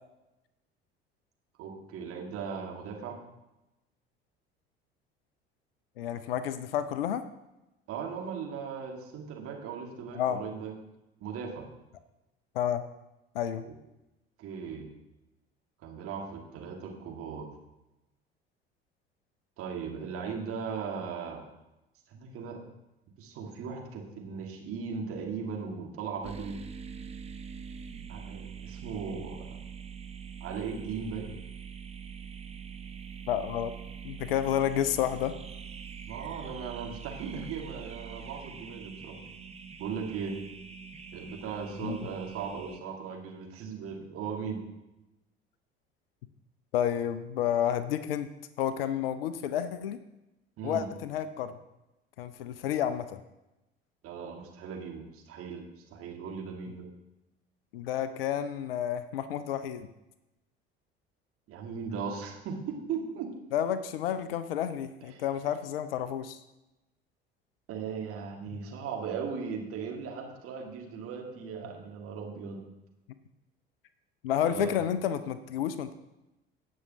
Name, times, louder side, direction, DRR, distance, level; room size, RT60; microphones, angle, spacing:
voice 1, 1.6-3.1 7.9-10.7 11.2-11.7 13.6-13.7 14.4-14.9 15.8-17.5 19.6-21.4 22.1-22.6 23.2-26.6 28.1-29.6 30.4-31.3 36.0-39.2 39.8-40.3 41.1-44.6 50.6-50.9 54.0-55.6 55.9-56.9 61.5-63.3 65.1-65.2 67.7-72.6 74.4-74.7, right 6 dB, 45° right, 1 dB, 2.0 m, -38 dB
voice 2, 6.0-7.2 10.1-10.4 12.6-12.8 13.3-13.6 33.3-33.7 34.0-35.3 41.8-42.1 46.7-48.3 48.6-50.0 50.6-51.5 52.2-53.2 57.7-59.9 63.5-66.4 74.2-75.9, left 10 dB, 65° left, 12 dB, 0.6 m, -30 dB
sound 1, 26.2-42.8, right 7 dB, 20° right, 0.9 m, -44 dB
17.5 x 6.3 x 2.8 m, 0.96 s
figure-of-eight pair, 60°, 31 cm